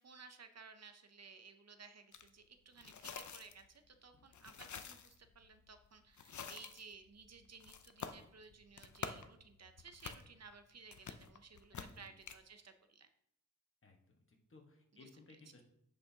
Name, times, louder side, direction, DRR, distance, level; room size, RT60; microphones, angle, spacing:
voice 1, 0.0-13.1 14.9-15.1, right 5 dB, 55° right, 9 dB, 0.6 m, -57 dB
sound 1, 2.1-2.3 2.7-12.4, left 7 dB, 70° left, 0.6 m, -50 dB
voice 2, 11.7-12.1 13.8-15.6, left 3 dB, 40° left, 1 dB, 1.3 m, -61 dB
9.6 x 5.3 x 2.8 m, 0.72 s
wide cardioid pair, 115°, 31 cm